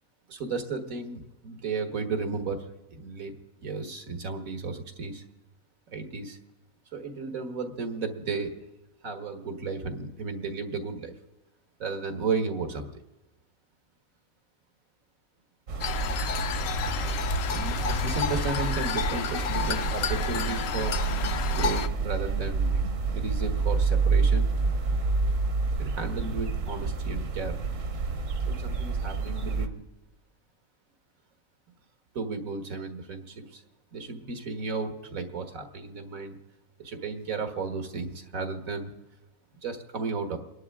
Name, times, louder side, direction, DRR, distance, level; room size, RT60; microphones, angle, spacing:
voice 1, 0.3-3.3 3.6-5.2 5.9-6.4 6.9-8.5 9.0-11.2 11.8-12.9 17.5-21.0 21.5-24.5 25.8-27.6 28.5-29.8 32.1-33.6 33.9-36.4 36.8-38.9 39.6-40.4, right 4 dB, 85° right, 6 dB, 1.9 m, -34 dB
sound 1, 15.7-29.7, right 4 dB, 70° right, 1.4 m, -28 dB
sound 2, 15.8-21.9, left 7 dB, 75° left, 1.1 m, -31 dB
29.5 x 11.0 x 3.6 m, 1.0 s
omnidirectional pair, 1.4 m